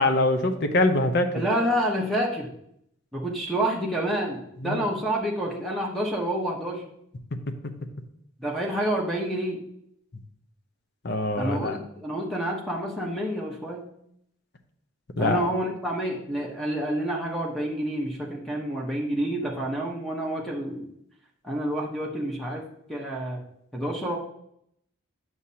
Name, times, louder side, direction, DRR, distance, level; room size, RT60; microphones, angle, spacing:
voice 1, 0.0-1.3 4.6-4.8 11.0-11.8 15.2-15.4, left 2 dB, 50° left, 6 dB, 0.7 m, -23 dB
voice 2, 1.3-2.5 3.1-6.8 8.4-9.6 11.4-13.9 15.2-20.9 21.4-22.6 22.9-23.4 23.7-24.2, right 1 dB, ahead, -2 dB, 1.0 m, -28 dB
8.7 x 6.3 x 2.8 m, 0.74 s
head